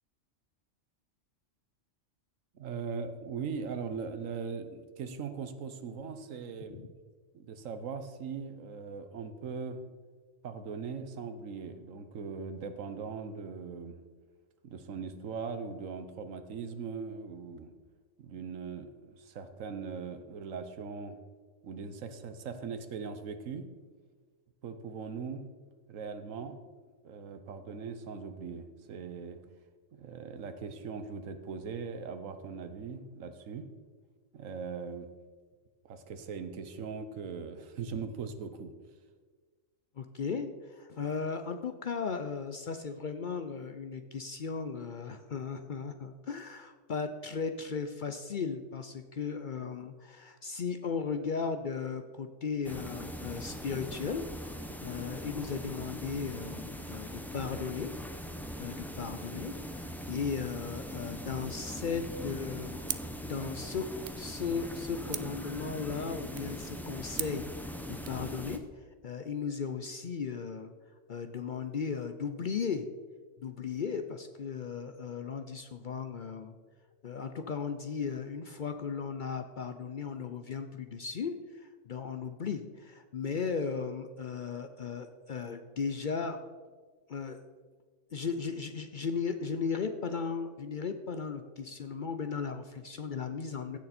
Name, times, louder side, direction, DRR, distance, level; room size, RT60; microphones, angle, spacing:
voice 1, 2.5-6.8 7.3-9.8 10.4-14.0 14.6-17.7 18.2-21.2 21.6-23.6 24.6-25.5 25.9-26.6 27.0-29.4 29.9-33.7 34.3-35.1 35.8-38.7, right 5 dB, 85° right, 9 dB, 1.3 m, -40 dB
voice 2, 40.0-57.9 58.6-62.9 63.2-63.9 64.2-68.6 69.0-70.7 71.1-72.9 73.4-76.6 77.0-86.4 87.1-87.4 88.1-93.8, left 5 dB, 55° left, 8 dB, 0.6 m, -36 dB
sound 1, 52.6-68.6, equal, ahead, 0.5 m, -41 dB
sound 2, 62.8-68.2, right 9 dB, 60° right, 0.5 m, -44 dB
16.0 x 6.7 x 4.2 m, 1.5 s
omnidirectional pair, 1.3 m